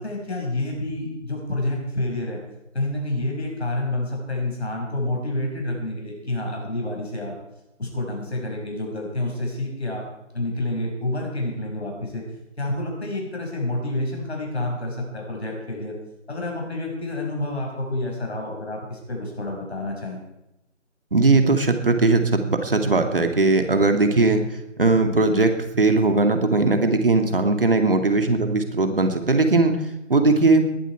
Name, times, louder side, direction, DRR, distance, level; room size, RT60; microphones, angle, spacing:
voice 1, 0.0-2.4 2.7-7.3 7.8-10.0 10.3-12.2 12.6-15.9 16.3-20.2, left 2 dB, 55° left, 0 dB, 6.0 m, -28 dB
voice 2, 21.1-24.4 24.8-29.8 30.1-30.7, right 3 dB, 45° right, 6 dB, 2.3 m, -19 dB
19.5 x 11.5 x 4.7 m, 0.90 s
figure-of-eight pair, 170°, 38 cm